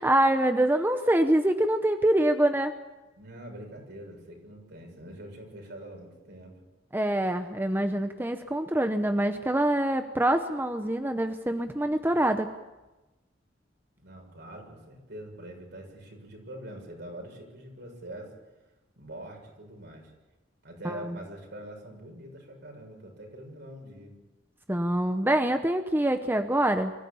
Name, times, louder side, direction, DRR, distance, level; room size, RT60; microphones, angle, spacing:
voice 1, 0.0-2.7 6.9-12.5 20.8-21.2 24.7-26.9, right 1 dB, 10° right, 7 dB, 0.8 m, -25 dB
voice 2, 3.2-6.6 14.0-18.3 19.0-20.1 20.6-24.1, right 1 dB, 65° right, 1 dB, 7.0 m, -44 dB
24.5 x 15.5 x 8.6 m, 1.1 s
head